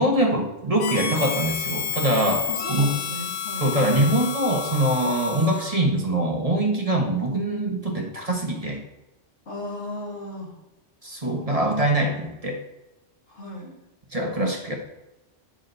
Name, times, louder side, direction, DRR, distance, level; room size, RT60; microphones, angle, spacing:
voice 1, 0.0-2.9 3.6-8.8 11.0-12.6 14.1-14.7, right 1 dB, 30° right, 1 dB, 1.4 m, -23 dB
Harmonica, 0.8-5.8, left 6 dB, 90° left, 1.2 m, -30 dB
voice 2, 2.4-3.6 9.5-10.5 13.3-13.7, left 1 dB, 70° left, -4 dB, 3.0 m, -35 dB
9.5 x 6.3 x 4.0 m, 1.0 s
omnidirectional pair, 1.2 m